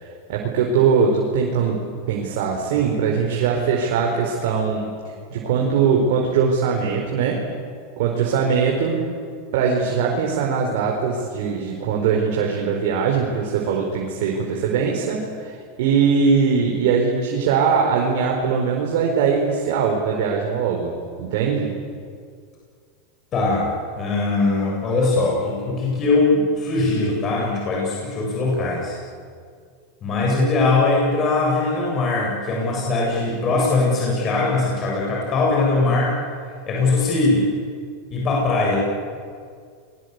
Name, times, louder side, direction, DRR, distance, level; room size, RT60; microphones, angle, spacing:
voice 1, 0.3-1.8 2.1-4.9 5.3-7.4 8.0-8.9 9.5-20.9 21.2-21.7, right 6 dB, 70° right, 0 dB, 4.7 m, -21 dB
voice 2, 23.3-23.7 24.0-29.0 30.0-36.2 36.7-37.5 38.1-38.8, left 3 dB, 35° left, -3 dB, 7.7 m, -21 dB
28.5 x 22.5 x 8.4 m, 2.1 s
supercardioid pair, 120°, 0 cm